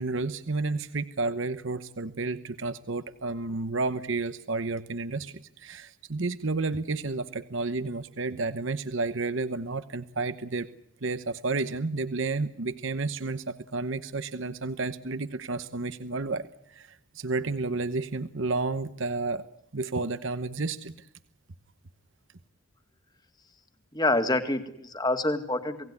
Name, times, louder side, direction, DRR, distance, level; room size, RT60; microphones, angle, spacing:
voice 1, 0.0-10.7 11.0-19.4 19.7-21.1, right 3 dB, 65° right, 12 dB, 1.0 m, -31 dB
voice 2, 23.9-25.9, left 2 dB, 20° left, 8 dB, 2.1 m, -27 dB
28.5 x 18.5 x 9.7 m, 0.78 s
head